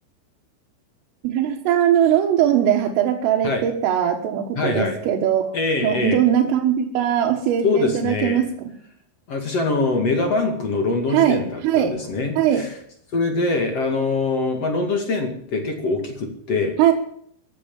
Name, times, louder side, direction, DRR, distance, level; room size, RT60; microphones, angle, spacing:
voice 1, 1.2-5.6 5.8-8.8 11.1-11.9 12.4-12.6 16.8-16.9, right 10 dB, 85° right, -1 dB, 4.1 m, -20 dB
voice 2, 4.6-5.0 5.5-6.2 7.6-8.4 9.3-12.7 13.1-16.8, left 3 dB, 45° left, 4 dB, 2.4 m, -23 dB
15.5 x 11.5 x 7.3 m, 0.66 s
omnidirectional pair, 5.7 m